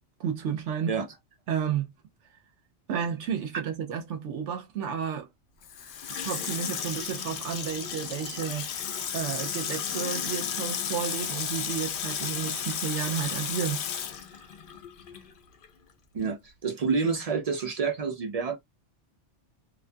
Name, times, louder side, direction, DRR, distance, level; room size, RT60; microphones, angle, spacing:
voice 1, 0.2-1.0 1.5-1.9 2.9-5.3 6.1-8.7 9.1-14.0, right 8 dB, 75° right, 0.9 m, -32 dB
Water tap faucet / Sink (filling or washing), 5.6-15.3 15.6-15.7, left 8 dB, 60° left, 0.6 m, -33 dB
voice 2, 16.1-18.6, right 5 dB, 60° right, 0.4 m, -28 dB
2.4 x 2.2 x 2.5 m
omnidirectional pair, 1.2 m